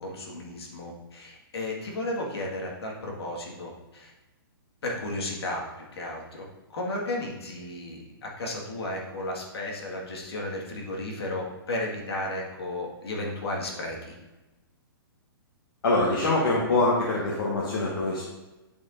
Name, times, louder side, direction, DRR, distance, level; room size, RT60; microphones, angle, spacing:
voice 1, 0.0-4.1 4.8-5.6 5.9-6.5 6.7-14.2, left 1 dB, 85° left, -1 dB, 1.8 m, -34 dB
voice 2, 15.8-18.2, left 2 dB, 70° left, -4 dB, 1.4 m, -24 dB
10.5 x 4.4 x 2.6 m, 1.1 s
hypercardioid pair, 165°, 13 cm